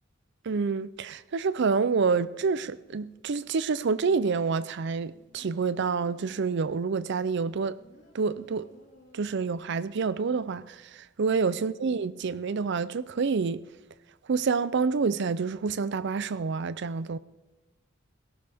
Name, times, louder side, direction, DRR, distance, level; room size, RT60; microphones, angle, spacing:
voice 1, 0.4-7.8 8.1-8.7 9.1-13.6 14.3-17.2, right 5 dB, 60° right, 0.5 m, -28 dB
sound 1, 5.1-6.7 7.3-9.7 10.1-10.2, left 1 dB, 45° left, 4.7 m, -58 dB
18.5 x 17.0 x 3.5 m
head